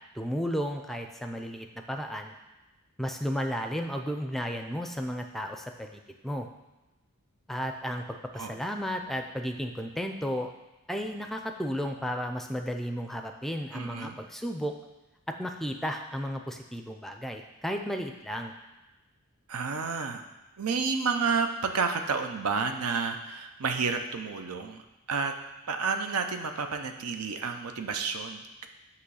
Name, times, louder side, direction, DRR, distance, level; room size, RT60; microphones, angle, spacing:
voice 1, 0.1-2.3 3.0-6.5 7.5-10.5 10.9-14.7 15.3-18.5, equal, ahead, 4 dB, 0.4 m, -33 dB
voice 2, 13.7-14.2 19.5-20.2 20.6-24.8 25.1-25.4 25.7-28.4, right 5 dB, 90° right, 6 dB, 0.7 m, -30 dB
8.4 x 3.1 x 6.3 m, 1.1 s
head